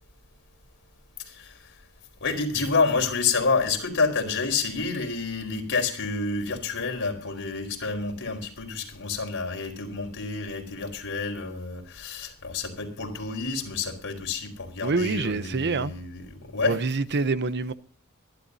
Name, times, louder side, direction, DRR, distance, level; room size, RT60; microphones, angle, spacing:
voice 1, 1.2-1.7 2.2-16.8, left 4 dB, 55° left, 4.5 m, -29 dB
voice 2, 14.8-15.9 16.6-17.7, right 3 dB, 50° right, 0.7 m, -26 dB
24.5 x 12.0 x 2.7 m
head